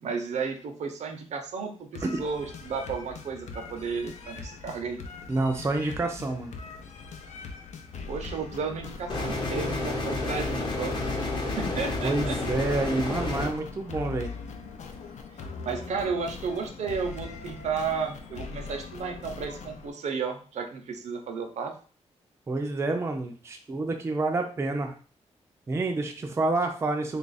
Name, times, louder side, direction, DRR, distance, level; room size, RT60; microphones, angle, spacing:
voice 1, 0.0-5.0 8.1-12.4 12.9-13.0 15.6-21.7, right 5 dB, 75° right, 5 dB, 0.6 m, -33 dB
sound 1, 1.9-19.9, left 5 dB, 80° left, 0.5 m, -41 dB
voice 2, 5.3-6.5 12.0-14.3 22.5-24.9 25.7-27.2, right 2 dB, 20° right, 3 dB, 0.4 m, -28 dB
sound 2, 9.1-13.5, left 2 dB, 40° left, 0.8 m, -30 dB
3.3 x 2.4 x 3.9 m, 0.40 s
wide cardioid pair, 180°, 12 cm